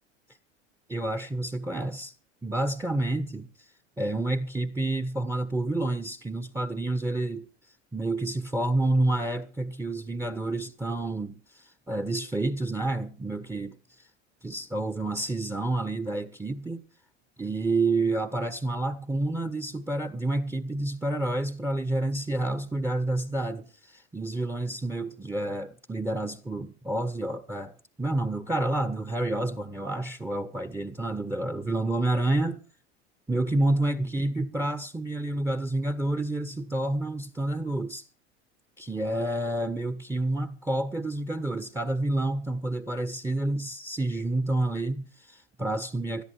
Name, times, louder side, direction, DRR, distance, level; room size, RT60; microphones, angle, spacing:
voice 1, 0.9-2.1 2.4-3.5 4.0-7.5 7.9-13.8 14.4-16.8 17.4-27.7 28.0-32.6 33.3-38.0 38.8-46.2, right 2 dB, 10° right, 1.3 m, -29 dB
20.0 x 13.0 x 4.7 m
hypercardioid pair, 90°, 36 cm